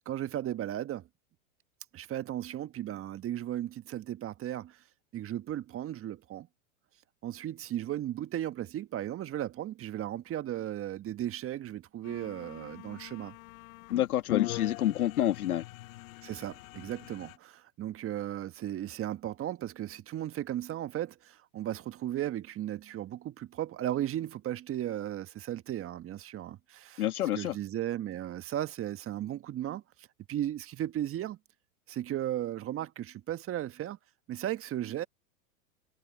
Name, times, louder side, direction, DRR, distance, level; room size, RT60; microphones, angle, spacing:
voice 1, 0.0-1.1 1.9-4.8 5.1-6.5 7.2-13.3 16.2-27.0 27.3-31.4 31.9-34.0 34.3-35.1, right 12 dB, 30° right, 1.5 m, -36 dB
sound 1, 12.0-17.4, left 19 dB, 65° left, 1.9 m, -40 dB
voice 2, 13.9-15.6 27.0-27.5, left 12 dB, 80° left, 2.0 m, -28 dB
hypercardioid pair, 105°, 43 cm